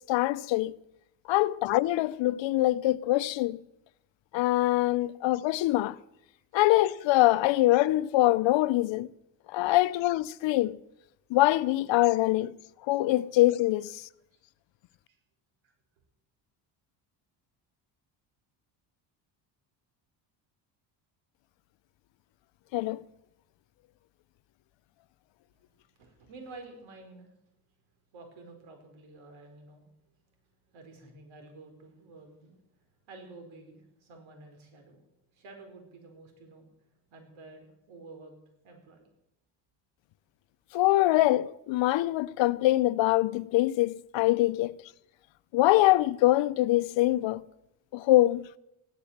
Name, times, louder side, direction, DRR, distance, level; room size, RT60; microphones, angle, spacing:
voice 1, 0.1-0.8 1.3-3.6 4.3-6.0 6.5-9.1 9.5-10.8 11.3-12.5 12.9-14.0 22.7-23.0 40.7-44.7 45.5-47.4 47.9-48.5, left 16 dB, 70° left, 0.7 m, -24 dB
voice 2, 26.0-27.3 28.1-29.8 30.7-35.0 35.3-36.7 37.1-38.3 38.6-39.1, right 3 dB, 75° right, 4.8 m, -50 dB
15.0 x 12.0 x 7.3 m
cardioid pair, 85°, 47 cm